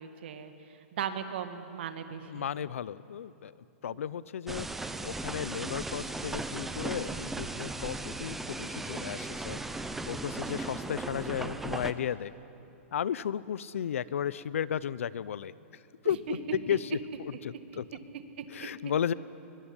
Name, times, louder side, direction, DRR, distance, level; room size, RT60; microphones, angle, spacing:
voice 1, 0.0-2.5 3.9-4.0 16.3-16.6 17.7-17.8 18.1-18.7, right 8 dB, 50° right, 8 dB, 2.0 m, -38 dB
voice 2, 2.3-3.5 3.8-4.7 5.0-9.6 10.0-12.3 12.9-16.4 16.7-16.9 17.2-17.9 18.5-19.1, left 9 dB, 75° left, 19 dB, 0.8 m, -34 dB
sound 1, 4.5-11.9, right 2 dB, 5° right, 0.6 m, -37 dB
23.0 x 23.0 x 10.0 m, 2.8 s
hypercardioid pair, 170°, 7 cm